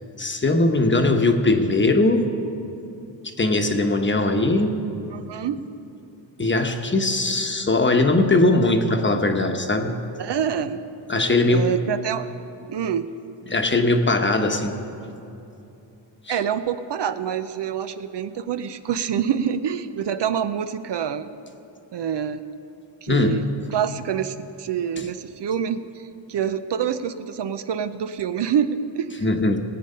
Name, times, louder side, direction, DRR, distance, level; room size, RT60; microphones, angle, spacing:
voice 1, 0.2-2.3 3.4-4.8 6.4-9.9 11.1-11.7 13.5-14.8 16.3-16.4 23.1-23.4 25.0-25.1 29.2-29.6, left 2 dB, 25° left, 5 dB, 1.0 m, -20 dB
voice 2, 5.1-5.6 10.2-10.8 11.5-12.3 12.7-13.1 16.3-21.3 21.9-22.4 23.0-23.4 23.7-29.3, right 8 dB, 65° right, 11 dB, 0.6 m, -26 dB
18.0 x 8.6 x 5.5 m, 2.8 s
cardioid pair, 90°, 46 cm